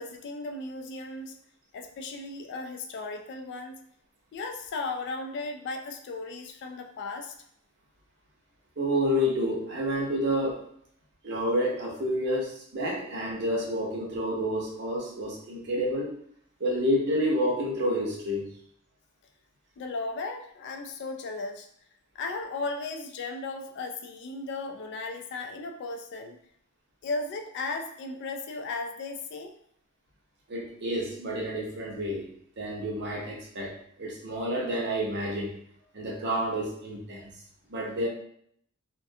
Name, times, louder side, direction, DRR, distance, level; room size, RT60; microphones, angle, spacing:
voice 1, 0.0-1.4 1.7-3.8 4.3-7.3 19.8-21.7 22.2-26.4 27.0-29.5, left 3 dB, 55° left, 5 dB, 0.3 m, -36 dB
voice 2, 8.8-10.6 11.2-16.2 16.6-18.5 30.5-32.3 32.6-35.5 35.9-37.3 37.7-38.1, equal, 50° right, -2 dB, 0.6 m, -29 dB
2.3 x 2.2 x 2.6 m, 0.68 s
head